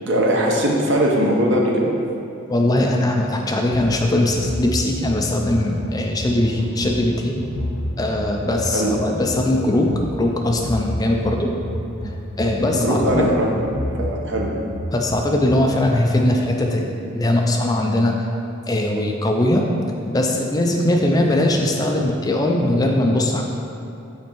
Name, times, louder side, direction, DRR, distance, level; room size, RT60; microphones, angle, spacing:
voice 1, 0.1-1.9 8.7-8.9 12.7-13.5 14.0-14.5, right 1 dB, 55° right, -1 dB, 0.9 m, -20 dB
voice 2, 2.5-7.4 8.0-9.9 10.2-11.5 12.4-13.3 14.9-18.2 18.7-19.6 20.1-23.6, left 1 dB, 15° left, 1 dB, 0.4 m, -20 dB
sound 1, 3.7-16.1, equal, 60° left, 0.7 m, -30 dB
5.7 x 4.4 x 4.5 m, 2.7 s
head